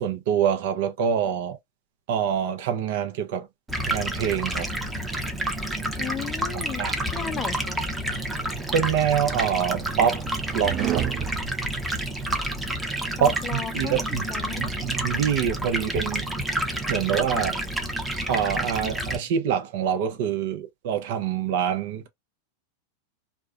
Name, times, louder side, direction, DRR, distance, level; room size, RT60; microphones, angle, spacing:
voice 1, 0.0-1.6 2.1-3.5 3.9-4.7 6.5-7.0 8.7-10.2 10.5-11.0 13.2-14.3 14.6-16.3 16.9-17.6 18.3-22.1, right 8 dB, 65° right, 0.7 m, -25 dB
Stream, 3.7-19.2, right 1 dB, 10° right, 0.7 m, -29 dB
voice 2, 6.0-7.8 13.2-14.7, left 8 dB, 25° left, 0.4 m, -35 dB
sound 1, 9.2-12.5, right 13 dB, 40° right, 0.3 m, -32 dB
2.3 x 2.2 x 2.4 m
hypercardioid pair, 105°, 0 cm